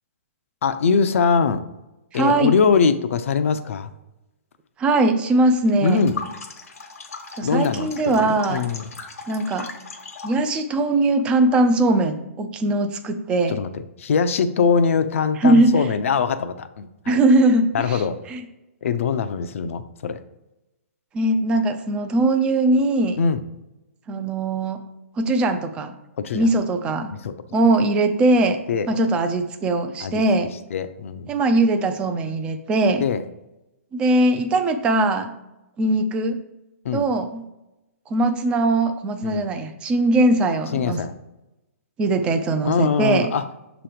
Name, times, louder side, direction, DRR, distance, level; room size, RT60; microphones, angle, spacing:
voice 1, 0.6-1.6 2.1-3.9 5.8-6.2 7.4-8.9 13.5-17.2 17.7-18.2 18.8-20.2 23.2-23.4 26.2-26.5 27.2-27.3 28.7-28.9 30.0-30.2 30.7-31.3 33.0-33.2 36.8-37.1 39.2-39.4 40.7-41.1 42.6-43.4, left 5 dB, 65° left, 10 dB, 0.5 m, -22 dB
voice 2, 2.1-2.5 4.8-6.0 7.4-8.6 9.3-9.7 10.2-13.6 15.4-15.7 17.1-18.0 18.3-18.4 21.1-23.2 24.1-24.8 25.2-26.0 26.3-27.1 27.5-28.6 28.9-30.5 31.3-33.0 33.9-35.3 35.8-36.4 36.9-37.4 38.1-41.0 42.0-43.3, right 2 dB, 15° right, 8 dB, 0.4 m, -20 dB
sound 1, 5.7-10.5, left 4 dB, 90° left, 1.2 m, -37 dB
6.8 x 3.0 x 5.0 m, 0.95 s
hypercardioid pair, 160°, 8 cm